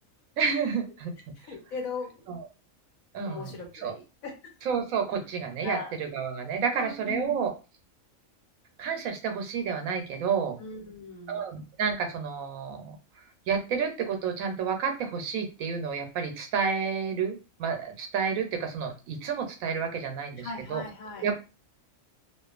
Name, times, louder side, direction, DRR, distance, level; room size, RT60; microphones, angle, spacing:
voice 1, 0.4-1.1 2.3-2.4 3.1-3.9 4.7-7.5 8.8-10.6 11.3-13.0 13.5-20.8 21.2-21.4, right 6 dB, 85° right, 5 dB, 1.1 m, -30 dB
voice 2, 1.4-2.2 3.3-4.3 5.6-6.0 6.7-7.5 10.6-11.4 20.4-21.3, left 4 dB, 85° left, 1 dB, 1.3 m, -38 dB
2.5 x 2.4 x 2.4 m, 0.31 s
omnidirectional pair, 1.4 m